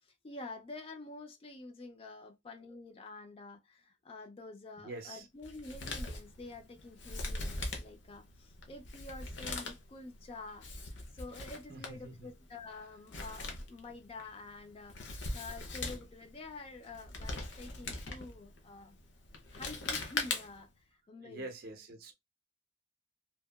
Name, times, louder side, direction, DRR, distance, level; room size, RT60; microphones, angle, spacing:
voice 1, 0.0-15.0 15.3-19.0 19.5-21.5, left 3 dB, 30° left, 0.3 m, -48 dB
voice 2, 4.8-5.3 11.7-12.3 21.2-22.1, right 2 dB, 50° right, 0.4 m, -46 dB
Male speech man speaking, 5.4-20.7, left 3 dB, 75° left, 0.6 m, -42 dB
2.8 x 2.5 x 2.2 m
head